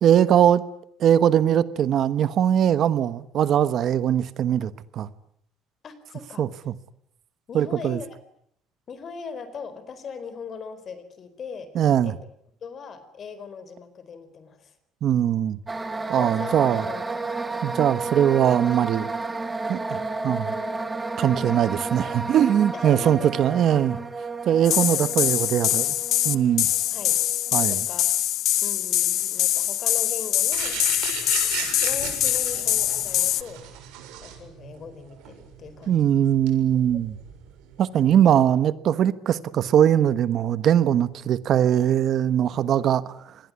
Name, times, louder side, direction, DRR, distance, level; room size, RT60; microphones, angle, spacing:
voice 1, 0.0-0.6 1.0-5.1 6.4-6.7 7.5-8.0 11.7-12.1 15.0-15.6 16.1-16.9 17.6-19.1 19.7-20.5 21.2-24.0 24.4-25.9 26.2-26.7 27.5-27.8 35.9-37.1 37.8-43.4, right 10 dB, 50° right, 1.2 m, -21 dB
voice 2, 5.8-6.5 7.5-8.2 8.9-12.2 12.6-14.8 16.2-17.0 17.4-17.6 21.3-21.7 22.7-23.6 24.9-25.1 26.9-27.2 27.7-28.2 28.6-30.8 31.6-33.7 34.2-36.2 36.9-37.0 37.9-38.3, left 5 dB, 35° left, 4.2 m, -39 dB
sound 1, 15.7-27.5, right 3 dB, 15° right, 1.7 m, -32 dB
sound 2, 24.6-33.4, left 13 dB, 60° left, 1.2 m, -24 dB
sound 3, 30.5-38.2, right 9 dB, 90° right, 6.9 m, -36 dB
25.5 x 21.0 x 9.7 m
cardioid pair, 135°, 0 cm